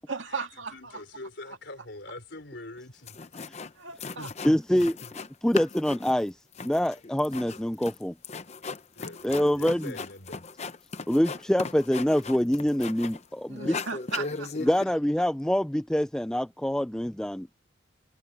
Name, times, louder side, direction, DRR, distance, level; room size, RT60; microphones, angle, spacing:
voice 1, 0.1-1.0 1.5-1.6 3.8-4.3 13.5-14.5, right 5 dB, 75° right, 2.0 m, -36 dB
voice 2, 0.7-3.2 4.2-5.1 5.5-5.6 8.9-10.5 14.6-14.7, left 2 dB, 60° left, 4.3 m, -43 dB
sound 1, 2.8-2.9 3.1-3.7 4.0-5.3 5.5-13.3 13.6-14.8, left 4 dB, 35° left, 0.7 m, -37 dB
voice 3, 4.4-4.9 5.4-8.1 9.2-9.9 11.1-13.8 14.6-17.6, equal, 5° left, 0.3 m, -25 dB
head